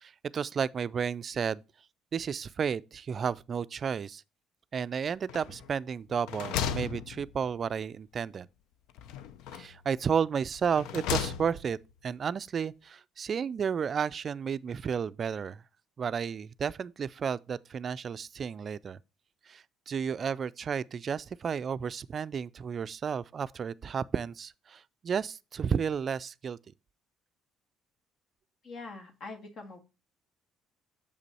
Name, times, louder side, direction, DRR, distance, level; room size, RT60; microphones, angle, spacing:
voice 1, 0.0-1.6 2.1-4.2 4.7-8.5 9.5-11.8 12.0-15.6 16.0-19.0 19.5-26.6, right 7 dB, 45° right, 0.3 m, -32 dB
sound 1, 5.3-5.8 6.1-7.7 9.0-9.8 10.5-11.8, left 8 dB, 80° left, 0.5 m, -35 dB
voice 2, 28.6-29.8, left 3 dB, 60° left, 1.8 m, -43 dB
6.9 x 5.2 x 4.1 m
supercardioid pair, 80°, 0 cm